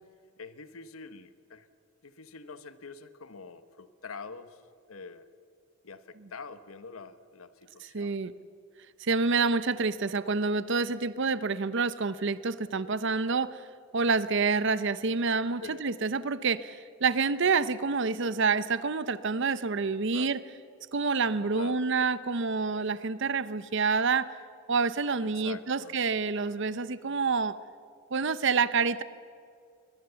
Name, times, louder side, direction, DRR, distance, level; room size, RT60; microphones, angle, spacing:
voice 1, 0.4-1.7 2.0-4.6 4.9-5.2 5.8-8.2 15.6-15.8 20.1-20.3 21.5-21.9 25.2-25.9, left 4 dB, 90° left, 12 dB, 1.1 m, -45 dB
voice 2, 7.9-8.3 9.0-13.6 13.9-20.4 20.9-24.3 24.7-27.6 28.1-29.0, right 4 dB, 60° right, 15 dB, 0.7 m, -28 dB
21.5 x 21.5 x 7.0 m, 2.3 s
head